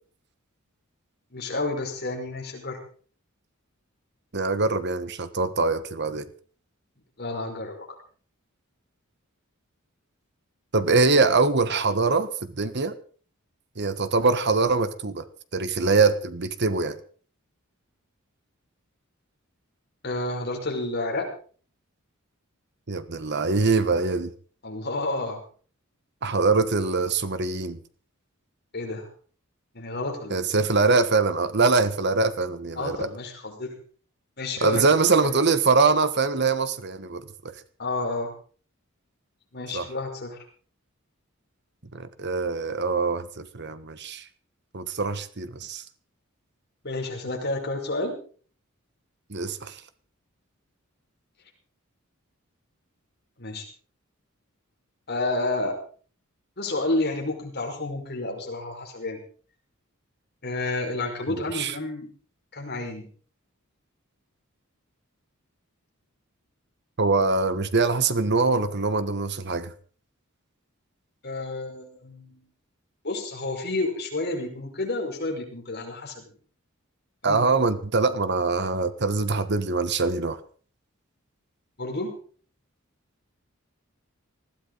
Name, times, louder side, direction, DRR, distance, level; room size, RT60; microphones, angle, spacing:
voice 1, 1.3-2.8 7.2-7.9 20.0-21.3 24.6-25.4 28.7-29.1 29.7-30.4 32.8-33.7 34.4-34.8 35.2-35.3 37.8-38.3 39.5-40.4 46.8-48.1 53.4-53.7 55.1-55.8 56.6-59.2 60.4-62.1 62.5-63.1 71.2-72.4 73.0-76.3 77.2-77.5 81.8-82.2, left 2 dB, 50° left, 1 dB, 5.5 m, -30 dB
voice 2, 4.3-6.2 10.7-12.3 12.6-13.0 13.8-15.2 15.5-17.0 22.9-24.3 26.2-27.8 30.3-33.1 34.6-37.5 39.7-39.9 41.9-44.2 44.7-45.8 49.3-49.8 61.3-61.7 67.0-69.7 77.2-80.4, right 4 dB, 55° right, 12 dB, 1.3 m, -23 dB
20.5 x 16.0 x 4.1 m, 0.43 s
head